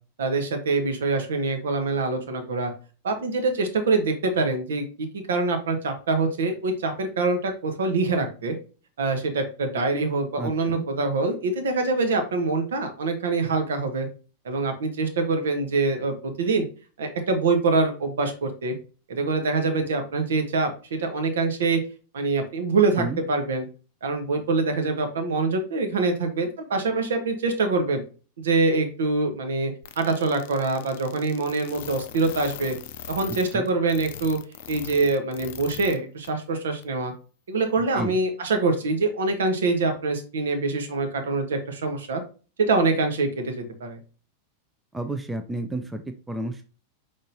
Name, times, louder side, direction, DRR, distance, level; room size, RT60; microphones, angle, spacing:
voice 1, 0.2-2.7 3.0-8.5 9.0-14.1 14.4-16.6 17.0-18.7 19.1-21.8 22.1-23.7 24.0-28.0 28.4-32.7 33.1-34.4 34.7-37.1 37.5-42.2 42.6-44.0, right 3 dB, 65° right, 5 dB, 1.0 m, -25 dB
voice 2, 10.4-10.9 23.0-23.2 33.5-33.7 37.9-38.1 44.9-46.6, right 2 dB, 10° right, 7 dB, 0.5 m, -31 dB
sound 1, 29.8-36.0 36.2-36.3 36.8-36.9, left 10 dB, 50° left, 0.4 m, -40 dB
5.2 x 3.6 x 2.6 m, 0.36 s
figure-of-eight pair, 90°, 0 cm